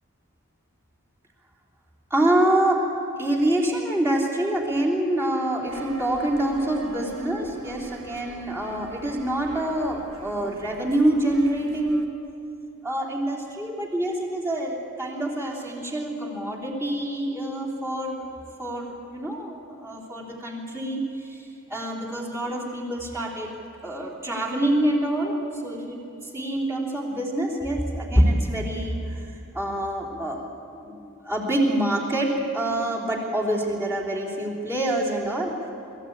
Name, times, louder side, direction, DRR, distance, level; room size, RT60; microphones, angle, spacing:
voice 1, 2.1-2.8 3.2-12.1 12.8-18.3 18.6-21.0 21.3-21.4 21.7-23.5 23.8-26.0 26.3-29.2 29.5-30.4 30.7-35.6, right 1 dB, 10° right, -5 dB, 3.1 m, -26 dB
sound 1, 5.7-12.1, right 2 dB, 65° right, 1.2 m, -42 dB
23.5 x 14.5 x 8.6 m, 2.8 s
head